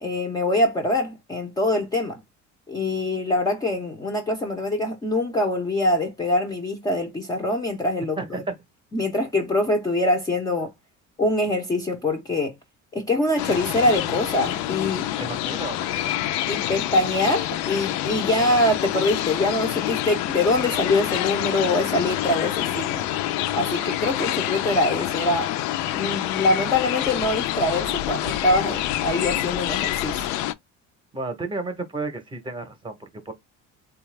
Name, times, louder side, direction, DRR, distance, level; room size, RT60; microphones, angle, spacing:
voice 1, 0.0-2.2 2.7-8.4 8.9-10.7 11.2-12.5 12.9-15.1 16.5-23.1 23.5-25.5 25.9-30.3, left 1 dB, 15° left, 0.5 m, -24 dB
voice 2, 8.2-8.6 15.2-16.1 31.1-33.3, right 3 dB, 15° right, 0.7 m, -32 dB
sound 1, 13.4-30.5, left 14 dB, 75° left, 0.4 m, -27 dB
4.0 x 2.3 x 3.1 m
cardioid pair, 175°, 29 cm